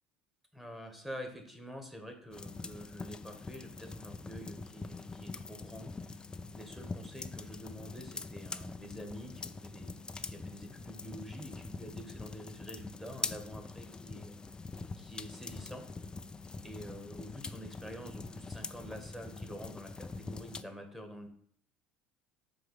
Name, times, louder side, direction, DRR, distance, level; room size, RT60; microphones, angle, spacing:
voice 1, 0.5-6.2 6.5-14.4 15.0-15.9 16.6-21.3, equal, 5° right, 4 dB, 1.6 m, -47 dB
sound 1, 2.3-20.6, left 3 dB, 15° left, 0.4 m, -44 dB
7.5 x 3.3 x 5.6 m, 0.63 s
figure-of-eight pair, 60°, 5 cm